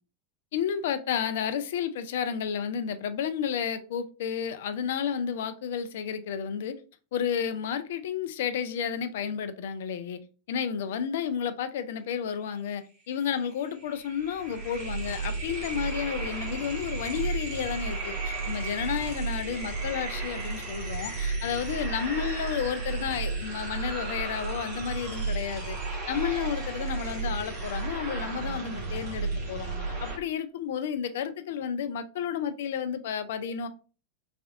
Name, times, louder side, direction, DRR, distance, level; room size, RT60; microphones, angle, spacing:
voice 1, 0.5-6.8 7.1-10.2 10.5-29.7 30.0-33.7, left 8 dB, 55° left, 0.3 m, -31 dB
sound 1, 13.2-13.3 13.5-30.2, right 3 dB, 40° right, 1.4 m, -33 dB
3.3 x 3.3 x 2.4 m
figure-of-eight pair, 90°, 0 cm